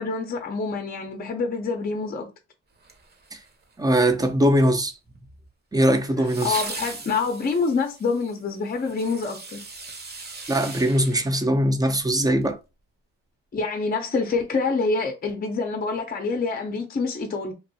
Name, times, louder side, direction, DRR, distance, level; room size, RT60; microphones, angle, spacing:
voice 1, 0.0-2.3 6.4-9.6 13.5-17.5, left 4 dB, 30° left, 0.6 m, -26 dB
sound 1, 2.8-3.7 6.2-12.1 12.4-12.5, right 3 dB, 35° right, 0.9 m, -39 dB
voice 2, 3.8-4.9 5.7-6.6 10.5-12.6, right 1 dB, 10° right, 0.6 m, -21 dB
3.0 x 2.6 x 2.7 m
cardioid pair, 90°, 30 cm